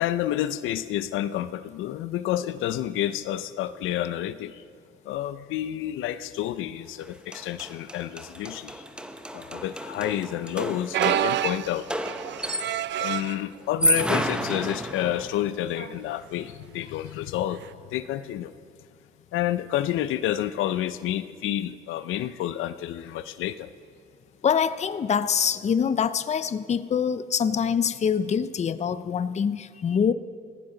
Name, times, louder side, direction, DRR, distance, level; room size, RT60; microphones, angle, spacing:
voice 1, 0.0-4.6 5.0-8.8 9.3-11.9 13.0-17.6 17.9-18.5 19.3-23.7, left 12 dB, 85° left, 14 dB, 0.5 m, -29 dB
sound 1, 7.0-7.1 7.3-13.0 13.6-15.4, equal, 5° right, 0.8 m, -30 dB
sound 2, 10.9-13.4 14.1-14.4 14.7-14.8 15.8-16.0 17.6-17.7, right 12 dB, 65° right, 0.4 m, -28 dB
voice 2, 24.4-30.1, left 7 dB, 35° left, 14 dB, 0.5 m, -25 dB
17.0 x 15.0 x 3.9 m, 2.1 s
cardioid pair, 90°, 20 cm